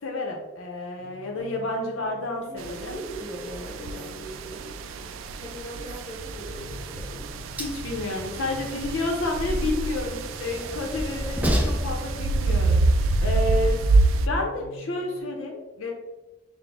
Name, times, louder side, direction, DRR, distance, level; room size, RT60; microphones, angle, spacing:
voice 1, 0.0-3.0 7.6-13.8 14.3-15.9, left 2 dB, 85° left, 1 dB, 0.7 m, -30 dB
sound 1, 1.0-6.1 6.5-15.2, left 3 dB, 10° left, 1.1 m, -48 dB
voice 2, 2.5-7.3 10.0-10.2, right 1 dB, 30° left, -6 dB, 1.3 m, -40 dB
sound 2, 2.6-14.3, right 3 dB, 85° right, 0.3 m, -27 dB
Train, 6.2-13.9, equal, 10° right, 0.4 m, -33 dB
5.9 x 2.1 x 3.4 m, 1.1 s
head